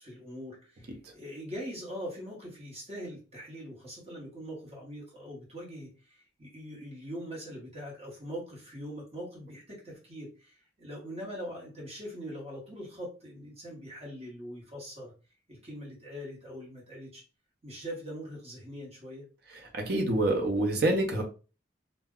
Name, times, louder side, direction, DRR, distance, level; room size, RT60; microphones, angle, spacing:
voice 1, 0.0-15.1 15.5-17.2 17.6-19.3, equal, 35° right, -3 dB, 1.0 m, -42 dB
voice 2, 19.7-21.2, right 1 dB, 60° right, 3 dB, 0.7 m, -26 dB
2.2 x 2.0 x 3.5 m, 0.34 s
head